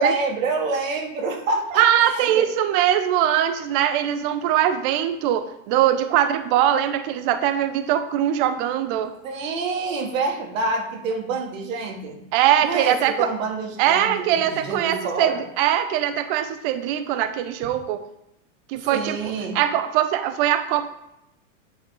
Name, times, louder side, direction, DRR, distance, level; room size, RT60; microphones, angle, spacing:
voice 1, 0.0-2.5 9.2-12.2 12.6-15.4 18.9-19.6, right 3 dB, 80° right, 3 dB, 1.6 m, -27 dB
voice 2, 1.8-9.1 12.3-13.3 13.8-18.0 18.7-20.9, right 11 dB, 45° right, 10 dB, 0.6 m, -21 dB
8.5 x 3.4 x 4.6 m, 0.84 s
supercardioid pair, 140°, 39 cm